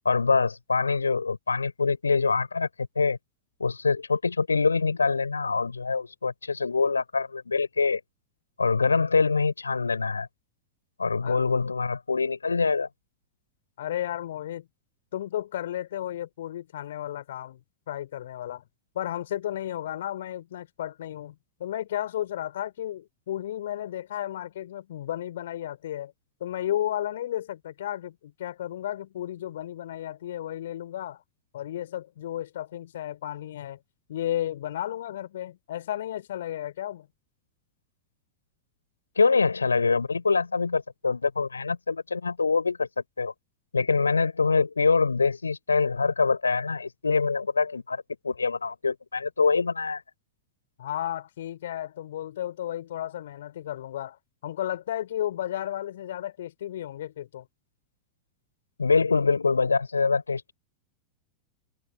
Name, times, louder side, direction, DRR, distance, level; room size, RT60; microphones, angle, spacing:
voice 1, 0.0-2.7 2.9-3.2 3.6-8.0 8.6-10.3 11.0-12.9 39.2-42.9 43.2-43.3 43.7-50.0 58.8-60.5, left 4 dB, 75° left, 5.0 m, -24 dB
voice 2, 13.8-14.7 15.1-17.6 17.9-18.6 19.0-21.4 21.6-26.1 26.4-31.2 31.5-33.8 34.1-37.1 50.8-54.2 54.4-57.5, left 12 dB, 60° left, 5.3 m, -33 dB
figure-of-eight pair, 90°, 0 cm